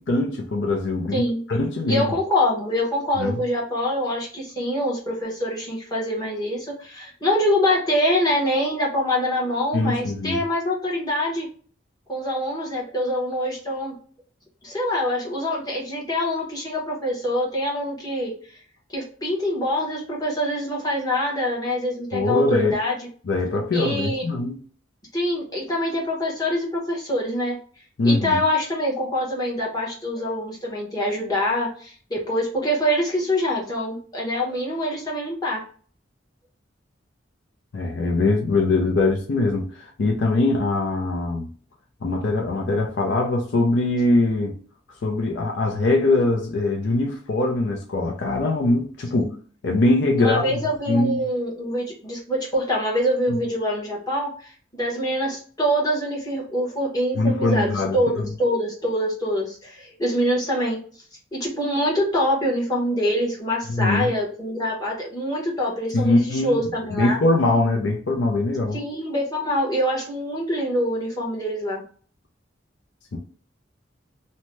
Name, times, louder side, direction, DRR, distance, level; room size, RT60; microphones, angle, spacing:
voice 1, 0.0-2.1 3.2-3.4 9.7-10.4 22.1-22.8 23.3-24.6 28.0-28.4 37.7-41.5 42.0-44.6 45.0-49.3 49.6-50.6 50.9-51.2 57.2-58.3 63.7-64.1 65.9-66.6 66.9-68.8 73.1-73.2, left 2 dB, 70° left, 0.5 m, -22 dB
voice 2, 1.9-11.5 12.1-13.9 14.6-18.6 18.9-22.9 23.7-24.3 25.1-27.6 28.0-35.6 49.1-49.3 50.2-60.8 61.3-67.2 68.7-71.8, equal, 20° left, 1.0 m, -25 dB
2.7 x 2.1 x 3.1 m
head